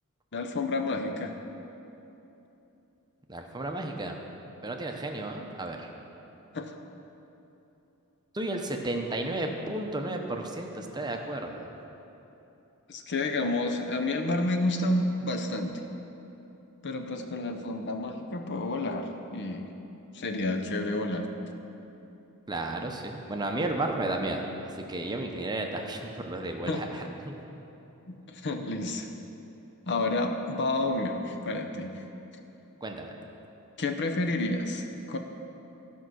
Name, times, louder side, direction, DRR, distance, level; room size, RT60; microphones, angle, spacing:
voice 1, 0.3-1.3 6.5-6.7 12.9-15.8 16.8-19.7 20.1-21.3 26.7-27.0 28.1-29.1 29.9-32.0 33.8-35.2, left 2 dB, 50° left, 4 dB, 0.8 m, -30 dB
voice 2, 3.3-4.2 4.6-5.9 8.3-11.7 22.5-24.5 24.9-26.9 27.3-27.4 32.8-33.1, right 2 dB, 20° right, 3 dB, 0.7 m, -33 dB
13.5 x 5.5 x 6.2 m, 3.0 s
head